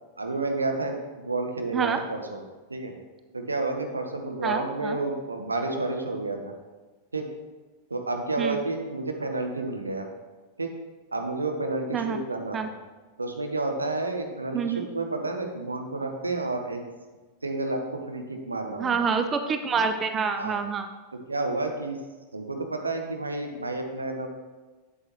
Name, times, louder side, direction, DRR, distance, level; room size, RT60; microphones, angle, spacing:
voice 1, 0.2-2.4 2.7-2.9 3.3-6.5 7.1-7.3 7.9-10.1 10.6-10.7 11.1-12.7 13.2-16.8 17.4-19.1 20.4-20.6 21.3-22.0 22.3-24.3, right 2 dB, 80° right, 4 dB, 1.0 m, -30 dB
voice 2, 4.4-5.0 8.4-8.6 11.9-12.2 12.5-12.7 14.5-14.9 18.8-20.9, right 5 dB, 25° right, 8 dB, 0.5 m, -27 dB
8.1 x 7.7 x 3.0 m, 1.2 s
figure-of-eight pair, 90°, 0 cm